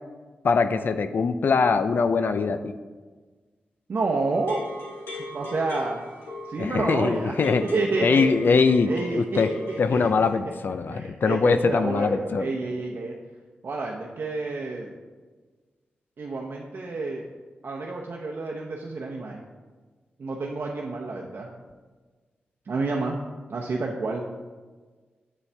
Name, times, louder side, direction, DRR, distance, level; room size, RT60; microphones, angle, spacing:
voice 1, 0.4-2.7 6.6-7.7 8.0-9.5 9.8-12.5, left 4 dB, 60° left, 10 dB, 0.4 m, -22 dB
voice 2, 3.9-4.6 5.3-6.0 6.5-7.3 7.6-8.4 8.9-10.1 10.9-13.1 13.6-14.9 16.2-17.3 17.6-19.4 20.2-21.5 22.7-23.2 23.5-24.2, right 3 dB, 60° right, -1 dB, 0.7 m, -29 dB
sound 1, 4.3-10.3, left 2 dB, 85° left, 2.6 m, -38 dB
8.0 x 7.1 x 3.3 m, 1.4 s
cardioid pair, 50°, 4 cm